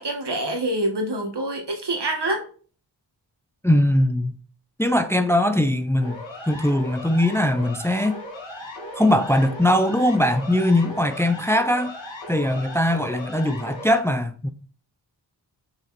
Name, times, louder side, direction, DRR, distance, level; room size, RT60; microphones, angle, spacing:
voice 1, 0.0-2.4, right 1 dB, 60° right, 2.0 m, -26 dB
voice 2, 3.6-4.4 4.8-8.2 9.0-11.9 12.3-14.5, left 1 dB, 5° left, 0.8 m, -21 dB
Siren, 6.0-14.0, left 1 dB, 85° left, 2.6 m, -37 dB
6.5 x 5.5 x 4.4 m
cardioid pair, 40°, 45 cm